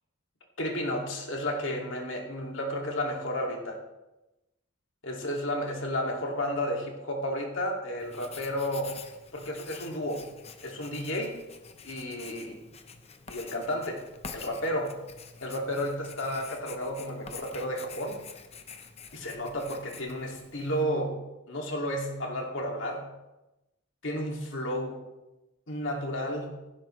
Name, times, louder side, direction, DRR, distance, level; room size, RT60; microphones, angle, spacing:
voice 1, 0.6-3.8 5.0-8.9 9.3-10.2 10.6-11.4 11.8-12.6 13.3-14.0 14.3-15.0 15.4-18.2 19.1-23.1 24.0-25.0 25.7-26.6, equal, 65° left, 0 dB, 2.4 m, -32 dB
Writing, 8.0-20.8, left 5 dB, 30° left, 0.8 m, -47 dB
16.0 x 11.5 x 3.2 m, 0.99 s
head